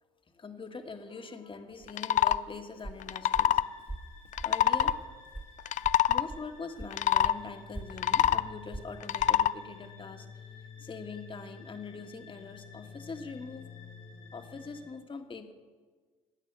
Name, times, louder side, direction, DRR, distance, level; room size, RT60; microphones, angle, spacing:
voice 1, 0.3-3.6 4.4-5.0 6.1-10.3 10.8-13.7 14.3-15.5, left 4 dB, 30° left, 6 dB, 1.7 m, -43 dB
Walk footsteps, 1.7-6.5 6.7-9.4, right 2 dB, 15° right, 1.5 m, -44 dB
sound 1, 1.9-2.4 3.0-3.7 4.3-5.0 5.6-6.3 6.9-7.3 7.9-8.5 9.0-9.5, left 11 dB, 50° left, 0.5 m, -25 dB
sound 2, 3.3-14.9, left 6 dB, 85° left, 4.9 m, -51 dB
14.5 x 9.1 x 7.0 m, 1.5 s
hypercardioid pair, 55°, 16 cm